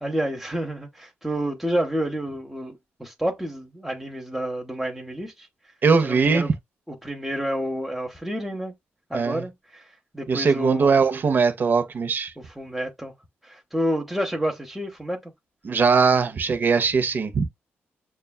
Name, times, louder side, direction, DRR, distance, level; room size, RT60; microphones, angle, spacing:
voice 1, 0.0-5.5 6.0-6.5 6.9-8.7 9.1-11.0 12.4-13.1 13.4-15.3, equal, 5° right, 0.8 m, -29 dB
voice 2, 5.8-6.4 9.1-9.4 10.3-12.3 15.6-17.4, right 5 dB, 50° right, 0.7 m, -20 dB
6.5 x 2.3 x 2.3 m
cardioid pair, 90°, 4 cm